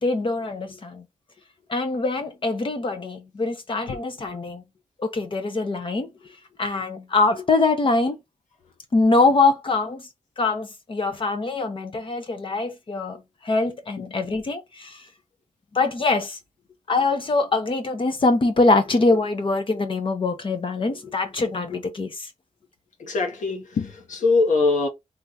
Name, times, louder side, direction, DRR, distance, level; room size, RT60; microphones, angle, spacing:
voice 1, 0.0-1.0 1.7-4.6 5.0-6.1 6.6-8.2 8.9-10.0 10.4-15.0 15.7-16.4 16.9-22.3, left 3 dB, 45° left, 1.0 m, -23 dB
voice 2, 23.0-24.9, left 3 dB, 90° left, 1.2 m, -22 dB
3.6 x 3.1 x 4.0 m
wide cardioid pair, 150°, 13 cm